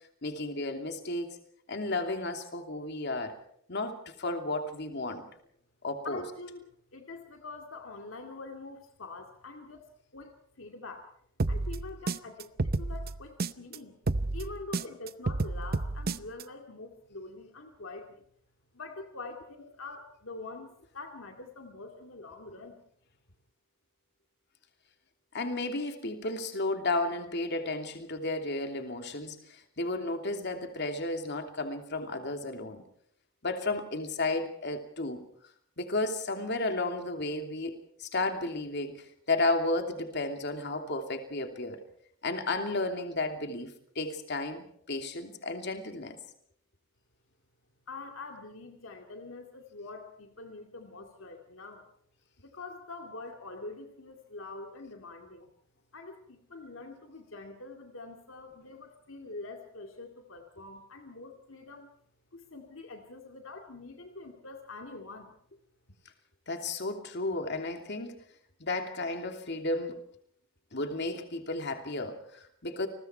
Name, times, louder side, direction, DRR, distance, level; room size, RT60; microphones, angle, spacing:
voice 1, 0.2-1.4 1.7-3.3 3.7-5.2 5.8-6.2 25.3-32.8 33.4-35.2 35.8-41.8 42.2-46.2 66.5-68.1 68.6-70.0 70.7-72.9, left 2 dB, 55° left, 5 dB, 2.9 m, -33 dB
voice 2, 6.0-9.8 10.1-11.1 11.5-13.9 14.3-18.2 18.7-22.8 47.9-51.9 52.4-55.5 55.9-61.9 62.3-65.3, left 3 dB, 70° left, 3 dB, 2.3 m, -45 dB
sound 1, 11.4-13.8 14.1-16.4, right 3 dB, 45° right, 0.8 m, -31 dB
29.5 x 21.0 x 4.6 m, 0.66 s
head